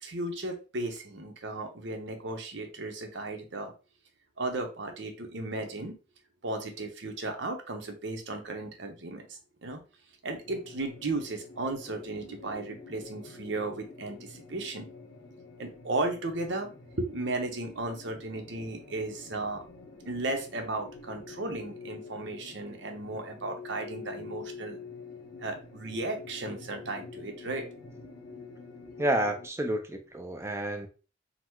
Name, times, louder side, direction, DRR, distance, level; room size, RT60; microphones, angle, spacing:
voice 1, 0.0-3.7 4.4-6.0 6.4-9.8 10.2-14.9 15.6-19.6 20.1-24.8 25.4-27.7 28.3-28.5, right 2 dB, 70° right, 0.9 m, -35 dB
sound 1, 10.4-29.5, left 4 dB, 85° left, 1.0 m, -47 dB
voice 2, 29.0-30.9, right 1 dB, 15° right, 0.5 m, -30 dB
4.0 x 2.1 x 4.5 m
head